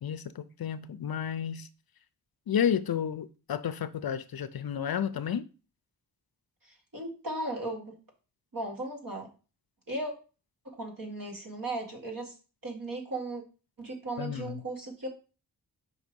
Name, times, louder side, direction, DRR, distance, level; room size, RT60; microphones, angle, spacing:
voice 1, 0.0-1.7 2.5-5.5 14.2-14.6, left 8 dB, 65° left, 0.5 m, -31 dB
voice 2, 6.6-8.0 8.5-9.3 9.9-10.1 10.6-12.3 12.6-13.4 13.8-15.1, right 2 dB, 55° right, 2.1 m, -36 dB
5.2 x 4.0 x 5.2 m
wide cardioid pair, 95°, 40 cm